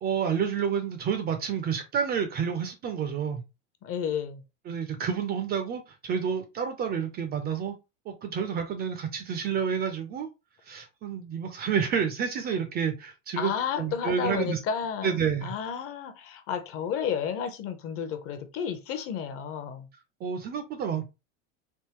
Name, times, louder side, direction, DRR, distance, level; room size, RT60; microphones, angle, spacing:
voice 1, 0.0-3.4 4.7-7.7 8.1-10.3 10.7-14.6 15.0-15.5 20.2-21.1, right 7 dB, 25° right, 0.4 m, -29 dB
voice 2, 3.8-4.4 13.4-15.2 15.4-19.9, left 7 dB, 35° left, 0.7 m, -32 dB
3.6 x 2.6 x 2.9 m
supercardioid pair, 130°, 38 cm